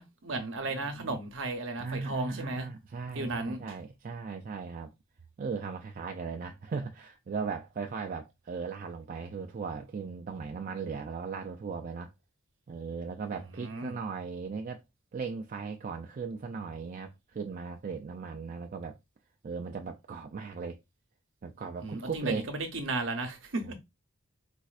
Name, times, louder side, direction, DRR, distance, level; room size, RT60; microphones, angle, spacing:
voice 1, 0.0-2.7 3.1-3.6 13.5-14.0 21.8-23.7, right 2 dB, 65° right, 0.8 m, -34 dB
voice 2, 0.6-1.2 1.8-4.9 5.4-12.1 12.7-14.8 15.1-19.0 19.4-20.8 21.4-22.5 23.6-23.7, right 5 dB, 40° right, 0.3 m, -37 dB
4.2 x 2.4 x 2.4 m
head